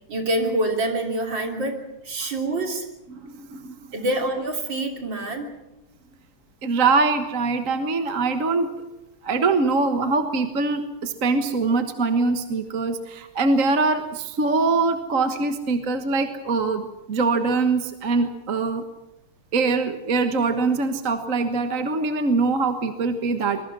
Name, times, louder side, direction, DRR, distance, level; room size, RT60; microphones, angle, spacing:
voice 1, 0.1-2.9 3.9-5.5, right 1 dB, 60° right, 3 dB, 4.0 m, -26 dB
voice 2, 3.1-3.7 6.6-8.7 9.2-18.8 19.5-23.6, right 3 dB, 40° right, 7 dB, 1.6 m, -23 dB
25.0 x 22.5 x 6.2 m, 0.95 s
omnidirectional pair, 2.3 m